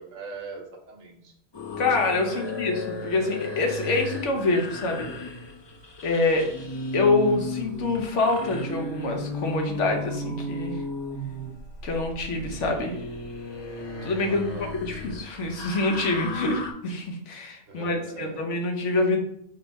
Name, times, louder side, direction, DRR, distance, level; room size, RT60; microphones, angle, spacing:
voice 1, 0.0-1.3 2.3-2.6 14.3-14.8 17.7-18.5, right 4 dB, 90° right, 2 dB, 1.3 m, -41 dB
sound 1, 1.5-16.7, left 1 dB, 35° left, 0.4 m, -35 dB
voice 2, 1.8-5.1 6.0-6.5 6.9-10.8 11.8-12.9 14.0-14.4 14.8-19.2, left 3 dB, 75° left, 3 dB, 1.2 m, -26 dB
5.4 x 2.3 x 4.0 m, 0.73 s
omnidirectional pair, 1.3 m